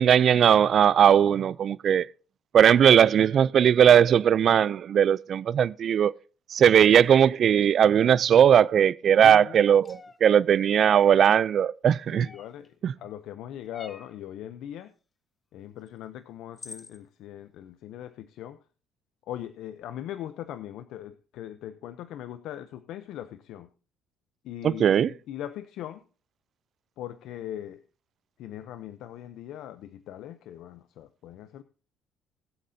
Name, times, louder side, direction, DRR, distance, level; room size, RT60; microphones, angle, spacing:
voice 1, 0.0-2.1 2.5-6.1 6.5-12.3 12.8-12.9 24.6-25.1, right 9 dB, 50° right, 0.4 m, -19 dB
voice 2, 9.2-9.5 12.1-12.7 13.0-14.9 15.5-18.6 19.3-23.7 24.4-26.0 27.0-27.8 28.4-31.6, left 11 dB, 75° left, 0.6 m, -40 dB
sound 1, 9.8-10.2 12.2-12.7 13.7-14.2 15.9-16.0 16.6-17.0, left 3 dB, 25° left, 1.0 m, -46 dB
20.0 x 7.6 x 2.7 m
cardioid pair, 105°, 0 cm